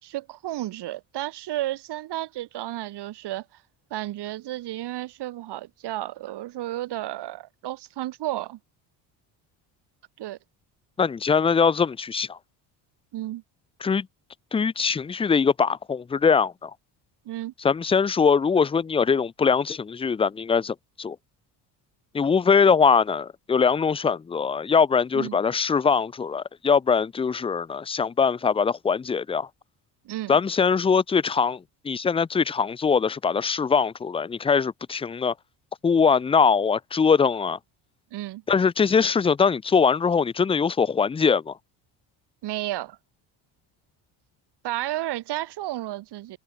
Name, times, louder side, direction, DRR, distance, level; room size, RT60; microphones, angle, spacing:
voice 1, 0.0-3.4 3.9-8.6 10.2-10.4 13.1-13.4 17.2-17.5 25.1-25.4 30.0-30.4 38.1-38.4 42.4-43.0 44.6-46.4, right 15 dB, 65° right, 5.1 m, -32 dB
voice 2, 11.0-12.4 13.8-14.1 14.5-16.7 17.6-21.2 22.1-29.5 30.3-35.3 35.8-37.6 38.5-41.5, left 5 dB, 15° left, 0.5 m, -22 dB
cardioid pair, 150°, 44 cm